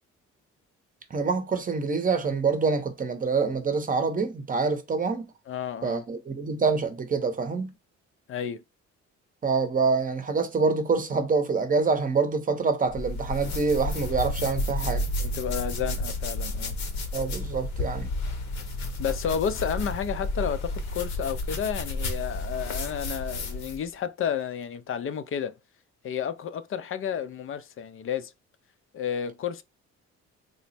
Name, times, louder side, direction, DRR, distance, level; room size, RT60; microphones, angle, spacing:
voice 1, 1.1-5.3 5.8-7.7 9.4-15.1 17.1-18.1, right 4 dB, 30° right, 0.7 m, -26 dB
voice 2, 5.5-6.0 8.3-8.6 15.2-16.7 19.0-25.5 26.0-28.3 28.9-29.6, left 8 dB, 45° left, 0.4 m, -31 dB
sound 1, 12.9-23.9, left 2 dB, 65° left, 0.8 m, -31 dB
3.3 x 2.0 x 4.1 m
cardioid pair, 90°, 30 cm